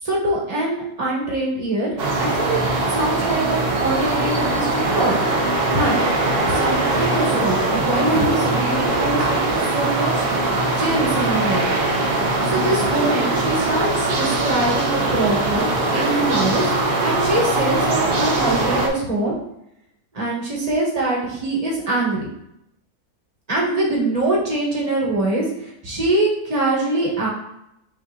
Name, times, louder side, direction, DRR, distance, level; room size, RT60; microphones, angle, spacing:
voice 1, 0.0-2.6 2.9-5.2 5.7-6.0 6.5-10.3 10.8-11.8 12.4-16.7 17.0-19.3 20.1-22.3 23.5-27.3, right 2 dB, 25° right, -4 dB, 1.1 m, -23 dB
sound 1, 2.0-18.9, right 2 dB, 55° right, 0.7 m, -21 dB
6.3 x 2.9 x 2.3 m, 0.80 s
omnidirectional pair, 1.6 m